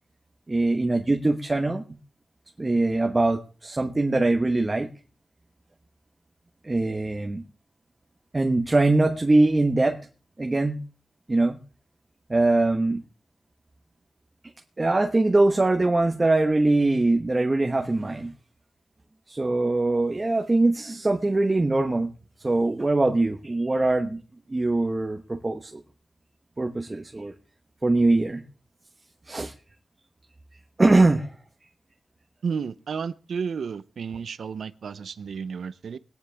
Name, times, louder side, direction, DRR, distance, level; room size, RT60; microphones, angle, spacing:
voice 1, 0.5-2.0 2.6-4.9 6.6-7.4 8.3-10.0 10.4-10.8 11.3-11.6 12.3-13.0 14.8-18.3 19.3-22.1 22.4-24.2 24.5-25.8 26.6-27.3 27.8-28.4 29.3-29.5 30.8-31.3, right 2 dB, 30° right, 1.1 m, -22 dB
voice 2, 32.4-36.0, right 6 dB, 90° right, 0.6 m, -32 dB
21.5 x 9.8 x 3.4 m
wide cardioid pair, 85°, 0 cm